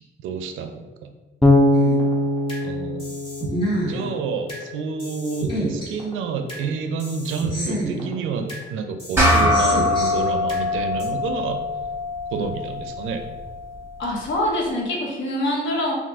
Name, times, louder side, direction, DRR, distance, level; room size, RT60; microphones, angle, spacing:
voice 1, 0.2-1.1 2.6-3.1 3.9-11.6 12.3-13.2, right 5 dB, 80° right, 6 dB, 0.4 m, -29 dB
Bass guitar, 1.4-4.4, left 1 dB, 5° left, 0.3 m, -21 dB
sound 1, 1.7-2.6 3.0-4.6 5.0-6.6 7.0-8.6 9.0-10.6 11.0-11.1, right 1 dB, 30° left, 1.3 m, -29 dB
sound 2, 9.2-13.9, left 2 dB, 10° right, 0.8 m, -23 dB
voice 2, 14.0-15.9, left 1 dB, 70° left, -1 dB, 0.8 m, -24 dB
2.5 x 2.4 x 3.4 m, 1.2 s
cardioid pair, 90°, 20 cm